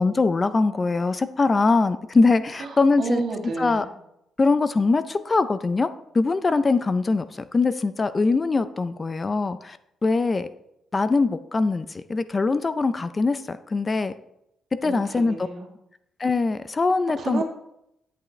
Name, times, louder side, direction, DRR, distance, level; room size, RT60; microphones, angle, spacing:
voice 1, 0.0-3.2 3.6-3.9 4.4-5.9 6.1-10.5 10.9-14.1 14.8-15.4 16.2-17.4, left 3 dB, 30° left, 13 dB, 0.5 m, -22 dB
voice 2, 3.0-3.8 14.8-15.7 17.2-17.4, right 4 dB, 60° right, 1 dB, 2.2 m, -30 dB
11.5 x 8.1 x 3.2 m, 0.81 s
cardioid pair, 105°, 0 cm